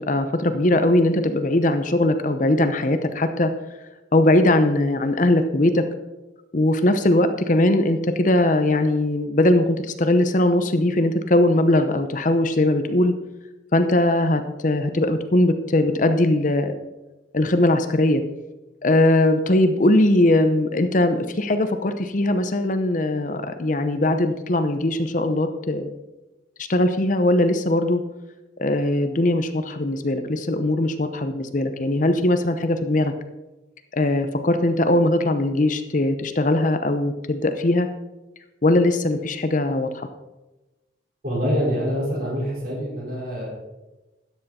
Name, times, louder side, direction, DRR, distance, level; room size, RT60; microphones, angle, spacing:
voice 1, 0.1-3.5 4.1-5.8 6.5-13.1 13.7-16.8 17.3-18.2 18.8-25.9 26.7-28.0 28.6-33.1 33.9-37.9 38.6-40.1, left 1 dB, 45° left, 8 dB, 0.8 m, -20 dB
voice 2, 41.2-43.5, equal, 50° right, -4 dB, 4.8 m, -25 dB
13.0 x 9.4 x 4.3 m, 1.0 s
head